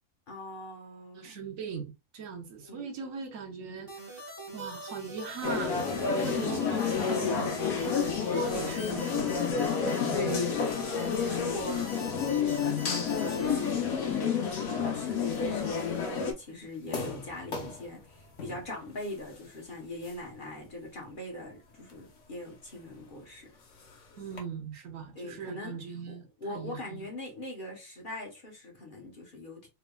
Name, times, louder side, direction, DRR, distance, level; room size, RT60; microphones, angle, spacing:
voice 1, 0.3-1.4 2.6-2.9 3.5-3.9 10.1-12.9 13.1-23.5 25.1-25.8 26.1-29.7, left 1 dB, 40° left, 1.1 m, -41 dB
voice 2, 1.1-7.6 8.3-9.6 10.0-10.3 24.2-27.1, right 5 dB, 75° right, 1.2 m, -40 dB
sound 1, 3.9-13.7, equal, 15° right, 1.4 m, -43 dB
sound 2, 5.4-16.3, left 6 dB, 85° left, 1.4 m, -30 dB
sound 3, 15.3-24.4, left 3 dB, 65° left, 1.2 m, -46 dB
3.5 x 3.3 x 2.2 m
omnidirectional pair, 1.4 m